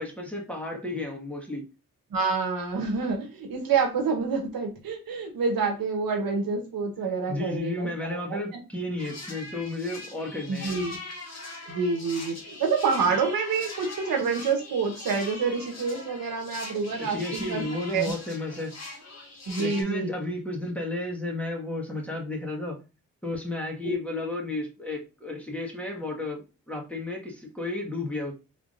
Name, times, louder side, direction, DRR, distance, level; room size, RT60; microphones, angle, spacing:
voice 1, 0.0-1.6 7.3-10.7 16.9-18.7 19.6-22.8 23.2-28.3, left 2 dB, 5° left, -1 dB, 1.5 m, -33 dB
voice 2, 2.1-8.4 10.5-11.0 11.7-17.6 17.9-18.1 19.5-20.1 23.8-24.0, right 5 dB, 85° right, 3 dB, 1.0 m, -27 dB
sound 1, 9.0-19.8, left 2 dB, 50° left, 1.6 m, -41 dB
3.6 x 3.5 x 2.5 m, 0.30 s
cardioid pair, 60°, 34 cm